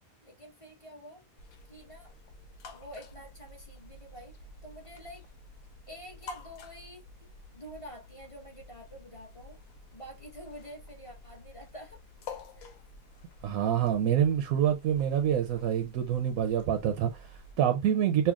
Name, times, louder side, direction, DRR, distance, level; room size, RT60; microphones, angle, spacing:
voice 1, 0.2-1.2 1.7-2.1 2.7-4.4 4.6-5.2 5.9-7.0 7.5-9.6 9.9-12.0 12.6-12.7, equal, 25° left, 1.1 m, -47 dB
sound 1, 1.4-17.5, left 3 dB, 90° left, 1.3 m, -50 dB
voice 2, 13.4-18.3, right 9 dB, 85° right, 1.0 m, -27 dB
5.6 x 2.3 x 2.3 m
omnidirectional pair, 1.5 m